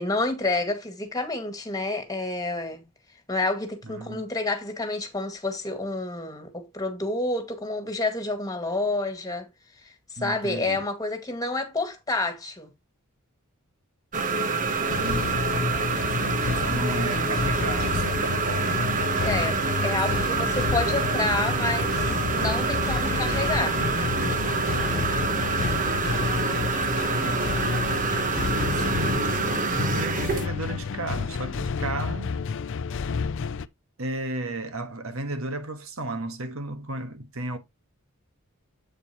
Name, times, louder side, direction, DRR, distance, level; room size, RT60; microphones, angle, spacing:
voice 1, 0.0-2.8 3.3-9.5 10.1-12.7 19.2-19.6 19.8-22.1 22.3-23.8, left 2 dB, 15° left, 2.0 m, -29 dB
voice 2, 3.8-4.2 10.2-10.8 14.6-19.6 28.5-32.3 34.0-37.6, right 2 dB, 70° right, 1.5 m, -34 dB
sound 1, 14.1-30.5, right 4 dB, 40° right, 1.0 m, -26 dB
sound 2, 14.9-33.7, left 5 dB, 60° left, 0.5 m, -30 dB
8.3 x 6.9 x 3.0 m
head